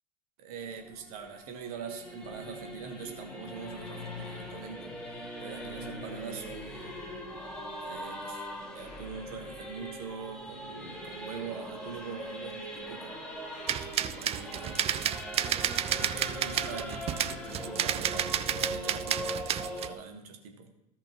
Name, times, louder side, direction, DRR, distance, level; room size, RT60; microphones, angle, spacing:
voice 1, 0.4-4.9 5.4-7.0 7.8-13.2 13.9-14.8 16.1-20.7, right 6 dB, 60° right, 4 dB, 1.4 m, -43 dB
Singing / Musical instrument, 0.6-19.9, equal, 5° left, 2.0 m, -41 dB
sound 1, 2.2-18.8, left 6 dB, 75° left, 1.1 m, -51 dB
sound 2, 13.7-19.9, right 11 dB, 30° right, 0.4 m, -31 dB
15.5 x 5.5 x 3.0 m, 0.86 s
figure-of-eight pair, 70°, 21 cm